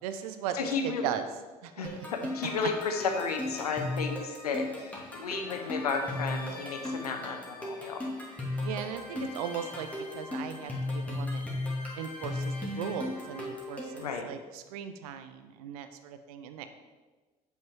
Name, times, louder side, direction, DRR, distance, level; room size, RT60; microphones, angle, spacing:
voice 1, 0.0-1.2 1.6-2.1 8.6-9.9 10.1-11.5 12.0-16.7, right 8 dB, 75° right, 9 dB, 0.7 m, -38 dB
voice 2, 0.5-1.1 1.7-8.1 14.0-14.3, left 5 dB, 85° left, 5 dB, 0.8 m, -33 dB
sound 1, 1.9-14.2, left 2 dB, 5° left, 2.5 m, -36 dB
7.4 x 5.6 x 4.6 m, 1.3 s
hypercardioid pair, 55°, 19 cm